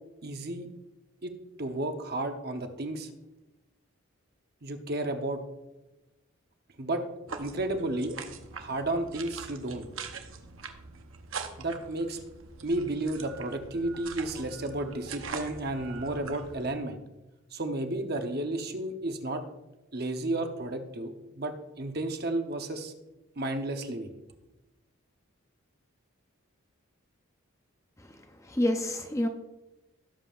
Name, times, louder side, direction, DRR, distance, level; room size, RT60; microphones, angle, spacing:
voice 1, 0.2-0.7 1.2-1.3 1.6-3.1 4.6-5.4 6.8-7.0 7.4-8.2 8.5-9.9 11.6-12.2 12.6-17.0 17.5-19.4 19.9-22.9 23.4-24.1, right 2 dB, 45° right, 6 dB, 0.9 m, -32 dB
sound 1, 7.3-16.7, right 5 dB, 70° right, 0.9 m, -43 dB
voice 2, 28.4-29.3, left 1 dB, 15° left, 5 dB, 0.6 m, -28 dB
16.5 x 7.4 x 2.5 m, 1.0 s
head